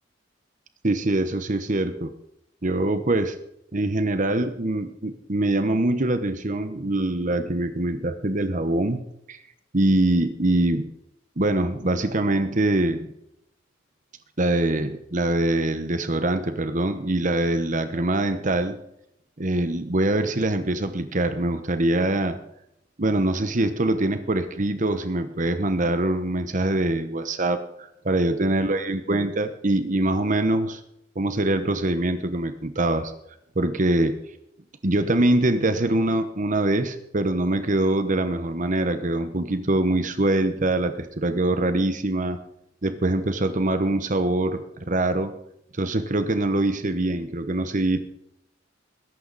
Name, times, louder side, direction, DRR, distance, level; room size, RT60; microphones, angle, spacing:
voice 1, 0.8-2.1 2.6-3.4 3.7-9.4 9.7-10.9 11.4-13.1 14.4-18.8 19.4-22.4 23.0-30.8 31.1-33.1 33.5-34.2 34.8-42.4 42.8-45.4 45.8-48.0, right 1 dB, 45° right, 9 dB, 1.1 m, -24 dB
20.5 x 11.5 x 4.1 m, 0.77 s
head